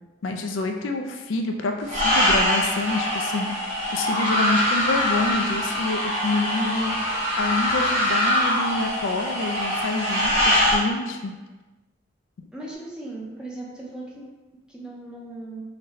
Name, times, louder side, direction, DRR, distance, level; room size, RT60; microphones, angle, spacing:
voice 1, 0.2-3.6 3.9-11.3, left 3 dB, 70° left, 4 dB, 0.4 m, -27 dB
sound 1, 1.9-10.8, equal, 35° right, 1.4 m, -23 dB
voice 2, 12.5-14.1 14.7-15.6, right 2 dB, 5° right, -5 dB, 0.6 m, -37 dB
3.8 x 2.2 x 4.0 m, 1.2 s
head